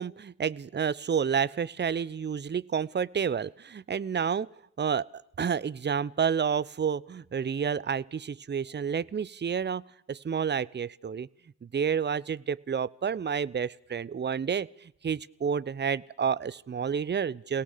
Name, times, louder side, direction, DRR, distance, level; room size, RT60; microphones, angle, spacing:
voice 1, 0.0-4.5 4.8-9.8 10.1-11.3 11.6-17.6, right 7 dB, 25° right, 21 dB, 0.8 m, -30 dB
29.0 x 18.0 x 6.8 m, 0.72 s
hypercardioid pair, 55°, 46 cm